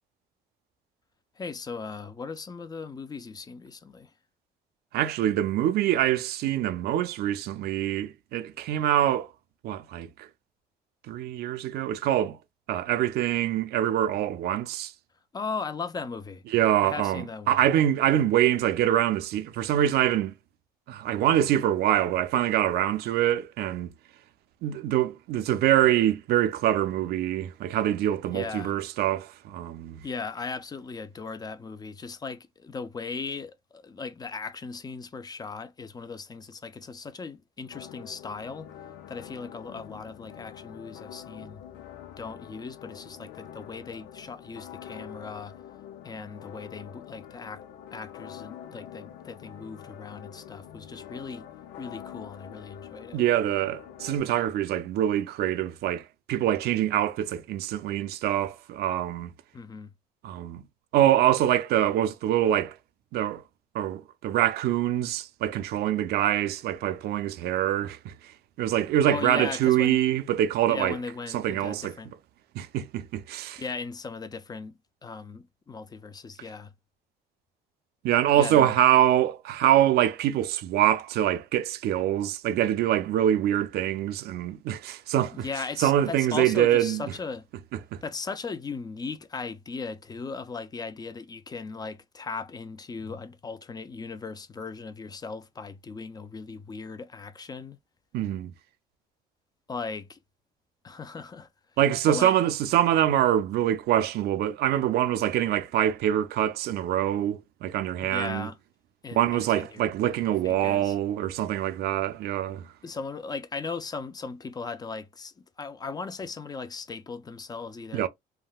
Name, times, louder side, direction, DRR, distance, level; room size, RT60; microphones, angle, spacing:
voice 1, 1.4-4.1 15.3-16.4 16.8-17.6 28.3-28.8 30.0-38.7 39.1-41.6 42.2-45.5 46.0-47.6 47.9-51.5 51.8-53.2 59.5-59.9 69.1-70.0 70.7-72.1 73.6-74.7 75.0-76.7 78.3-78.8 85.3-87.5 88.0-97.8 99.7-100.2 100.8-101.5 102.1-102.3 108.0-108.6 109.0-109.9 110.4-110.9 112.8-118.1, left 4 dB, 25° left, 0.4 m, -37 dB
voice 2, 4.9-9.3 9.6-10.3 11.1-12.4 12.7-14.9 16.5-20.3 20.9-23.9 24.6-30.0 53.1-59.3 60.2-60.6 60.9-62.8 63.1-63.4 63.7-68.3 68.6-71.0 71.3-71.9 72.5-73.6 78.0-85.5 85.8-87.0 87.9-88.0 98.1-98.5 101.8-108.5 109.1-112.7 117.9-118.1, right 12 dB, 70° right, 0.5 m, -25 dB
sound 1, 37.7-54.2, left 10 dB, 90° left, 0.5 m, -45 dB
3.5 x 2.2 x 2.3 m
cardioid pair, 110°, 17 cm